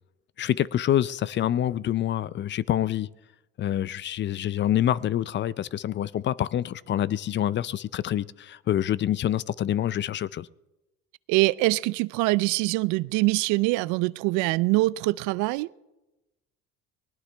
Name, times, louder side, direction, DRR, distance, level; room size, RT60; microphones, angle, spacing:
voice 1, 0.4-3.1 3.6-10.5, left 11 dB, 40° left, 0.4 m, -26 dB
voice 2, 11.3-15.7, right 21 dB, 75° right, 0.5 m, -24 dB
20.0 x 18.5 x 3.4 m
supercardioid pair, 90°, 30 cm